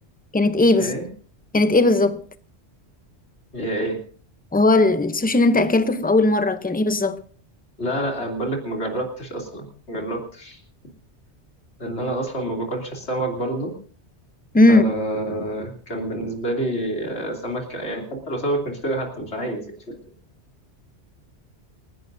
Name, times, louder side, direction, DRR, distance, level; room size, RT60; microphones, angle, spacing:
voice 1, 0.3-1.1 1.5-2.2 4.5-7.2 14.5-14.8, left 2 dB, 10° left, 0.6 m, -18 dB
voice 2, 3.5-4.0 7.8-10.6 11.8-13.7 14.7-19.9, right 1 dB, 75° left, 3.3 m, -28 dB
28.0 x 11.0 x 2.6 m
omnidirectional pair, 1.1 m